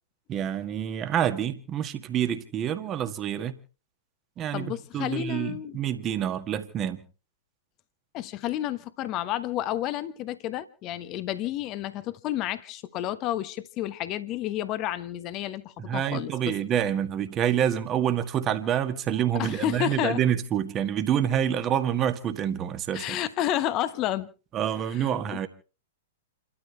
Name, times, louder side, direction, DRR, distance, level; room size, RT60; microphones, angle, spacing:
voice 1, 0.3-3.6 4.4-7.0 15.8-23.2 24.5-25.5, right 9 dB, 25° right, 1.8 m, -27 dB
voice 2, 4.5-5.8 8.1-16.5 19.4-20.2 22.9-24.3 24.9-25.1, left 12 dB, 35° left, 1.2 m, -30 dB
29.5 x 13.0 x 3.3 m
figure-of-eight pair, 105°, 0 cm